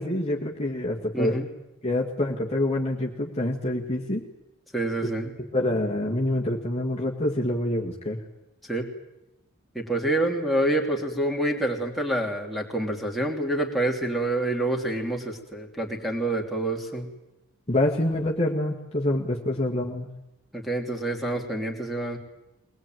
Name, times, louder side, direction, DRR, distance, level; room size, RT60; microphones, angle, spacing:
voice 1, 0.0-1.4 1.8-4.3 5.5-8.2 17.7-20.1, left 1 dB, 30° left, -1 dB, 1.8 m, -26 dB
voice 2, 1.1-1.5 4.7-5.3 8.6-8.9 9.7-17.1 20.5-22.2, right 1 dB, ahead, 3 dB, 3.1 m, -27 dB
22.5 x 20.0 x 9.2 m, 0.91 s
head